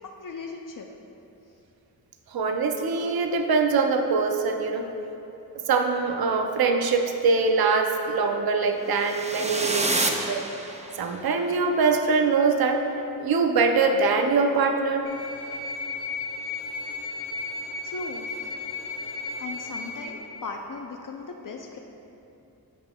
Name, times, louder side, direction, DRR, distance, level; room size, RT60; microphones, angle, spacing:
voice 1, 0.1-0.9 17.8-18.3 19.4-21.8, left 4 dB, 55° left, 2 dB, 0.5 m, -37 dB
voice 2, 2.3-4.9 5.7-10.4 11.0-12.8 13.2-15.1, right 4 dB, 70° right, 4 dB, 0.6 m, -23 dB
sound 1, 9.0-11.2, right 2 dB, 20° right, 0.5 m, -28 dB
sound 2, 15.0-20.1, left 3 dB, 90° left, 1.1 m, -34 dB
12.5 x 5.7 x 2.3 m, 2.8 s
wide cardioid pair, 70°, 38 cm